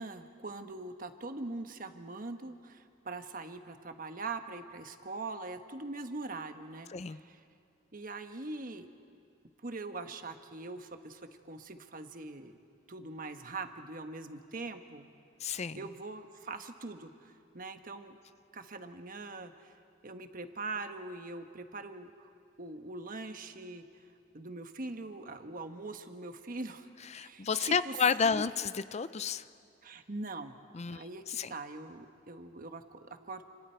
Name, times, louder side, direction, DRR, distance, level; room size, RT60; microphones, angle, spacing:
voice 1, 0.0-7.4 7.9-8.9 9.6-12.6 12.9-15.1 15.7-18.2 18.5-19.8 20.0-22.3 22.6-23.8 24.3-28.0 28.2-28.5 29.8-30.6 30.9-33.5, right 3 dB, 50° right, 7 dB, 1.2 m, -42 dB
voice 2, 6.9-7.2 15.4-15.8 27.1-29.4 30.7-31.5, left 6 dB, 35° left, 14 dB, 0.5 m, -31 dB
29.5 x 27.5 x 4.5 m, 2.4 s
head